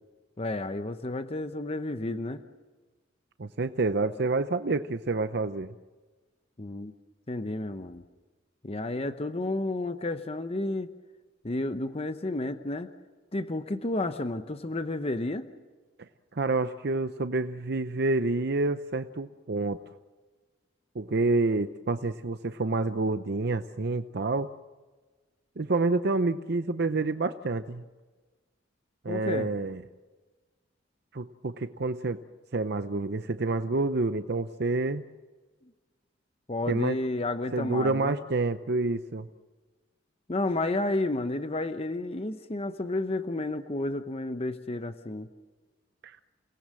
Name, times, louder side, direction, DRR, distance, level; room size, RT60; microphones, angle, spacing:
voice 1, 0.4-2.4 6.6-6.9 7.3-8.0 8.6-10.9 11.4-12.9 13.3-15.5 29.1-29.5 36.5-38.2 40.3-45.3, left 2 dB, 30° left, 9 dB, 0.9 m, -31 dB
voice 2, 3.4-5.7 16.3-19.8 20.9-24.5 25.6-27.8 29.0-29.8 31.1-32.2 32.5-35.0 36.7-37.0 37.5-39.3 46.0-46.2, right 3 dB, 60° right, 10 dB, 0.7 m, -28 dB
29.5 x 19.0 x 7.7 m, 1.3 s
head